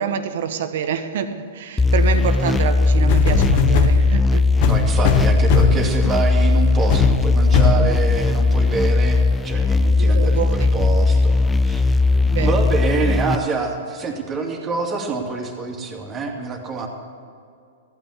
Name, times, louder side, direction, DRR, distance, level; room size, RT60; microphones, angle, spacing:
voice 1, 0.0-4.5 10.0-10.7 12.3-12.7, right 7 dB, 65° right, 9 dB, 1.3 m, -26 dB
sound 1, 1.8-13.4, left 3 dB, 10° left, 0.5 m, -18 dB
sound 2, 3.1-4.0 4.6-5.9 6.4-6.5 6.9-7.1 7.5-7.8 8.5-8.6, left 6 dB, 55° left, 1.3 m, -18 dB
voice 2, 4.6-9.2 9.4-11.9 12.4-16.9, right 4 dB, 25° right, 1 dB, 2.6 m, -26 dB
14.5 x 9.4 x 8.1 m, 2.4 s
hypercardioid pair, 115°, 0 cm